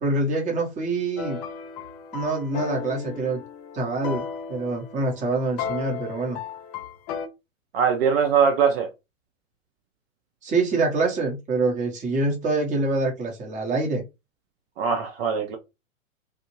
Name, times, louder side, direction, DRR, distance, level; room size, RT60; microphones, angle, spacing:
voice 1, 0.0-1.4 2.1-3.4 3.7-6.4 10.4-14.0, right 3 dB, 20° right, 0.8 m, -25 dB
sound 1, 1.2-7.3, left 7 dB, 30° left, 0.4 m, -35 dB
voice 2, 7.7-8.9 14.8-15.6, right 6 dB, 45° right, 0.6 m, -21 dB
2.5 x 2.1 x 2.9 m
hypercardioid pair, 110°, 41 cm